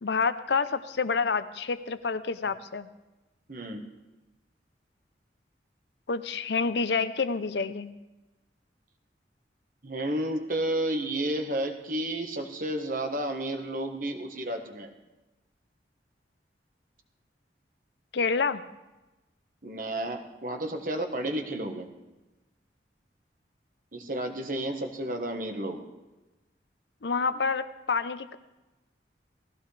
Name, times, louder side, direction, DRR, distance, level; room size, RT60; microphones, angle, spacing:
voice 1, 0.0-2.9 6.1-7.9 18.1-18.6 27.0-28.4, left 4 dB, 75° left, 13 dB, 0.7 m, -28 dB
voice 2, 3.5-3.8 9.8-14.9 19.6-21.9 23.9-25.8, right 1 dB, 50° right, 5 dB, 1.4 m, -31 dB
18.5 x 15.5 x 3.4 m, 1.1 s
head